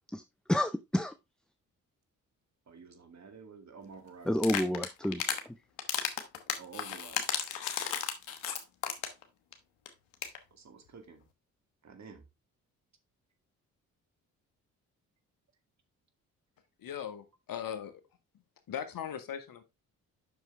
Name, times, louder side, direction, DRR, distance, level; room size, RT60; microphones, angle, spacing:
voice 1, 0.5-1.1 4.2-5.5, left 1 dB, ahead, 0.5 m, -30 dB
voice 2, 2.7-4.4 6.6-7.4 10.5-11.2 11.8-12.2, right 5 dB, 40° right, 1.9 m, -50 dB
sound 1, 4.4-5.4 5.8-9.2 9.5-9.6 9.9-10.0 10.1-10.4, left 8 dB, 80° left, 1.3 m, -34 dB
voice 3, 16.8-18.0 18.7-19.6, left 9 dB, 55° left, 1.6 m, -39 dB
7.8 x 6.1 x 3.4 m
hypercardioid pair, 45°, 40 cm